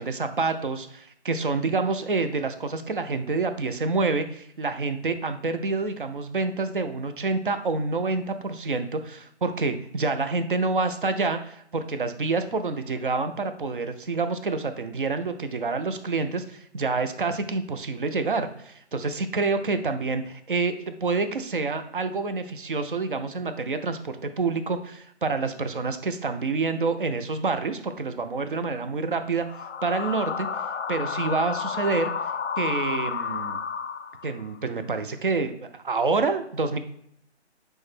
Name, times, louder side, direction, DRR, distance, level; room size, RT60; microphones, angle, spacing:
voice 1, 0.0-29.5 29.8-30.5 30.9-32.1 32.6-33.6 34.2-36.8, right 3 dB, 50° right, 9 dB, 0.4 m, -27 dB
sound 1, 29.4-34.5, left 6 dB, 80° left, 0.5 m, -31 dB
6.2 x 2.1 x 3.2 m, 0.71 s
hypercardioid pair, 170°, 35 cm